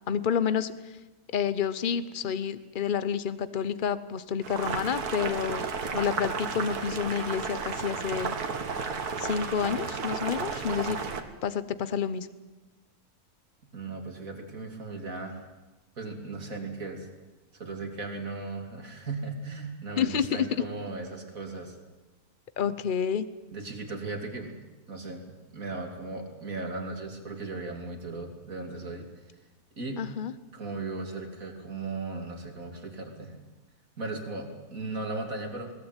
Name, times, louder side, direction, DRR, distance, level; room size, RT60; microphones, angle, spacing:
voice 1, 0.1-1.0 1.3-5.6 5.9-8.4 9.2-11.0 11.4-12.3 20.0-20.5 22.6-23.3 30.0-30.3, left 7 dB, 40° left, 14 dB, 1.0 m, -29 dB
Boiling, 4.4-11.2, right 5 dB, 80° right, 2.0 m, -33 dB
voice 2, 13.7-15.5 16.0-17.1 17.5-21.8 23.5-24.6 24.9-29.1 29.8-30.0 30.5-33.3 34.0-35.7, right 3 dB, 65° right, 3 dB, 3.4 m, -37 dB
21.0 x 18.5 x 9.1 m, 1.1 s
omnidirectional pair, 1.6 m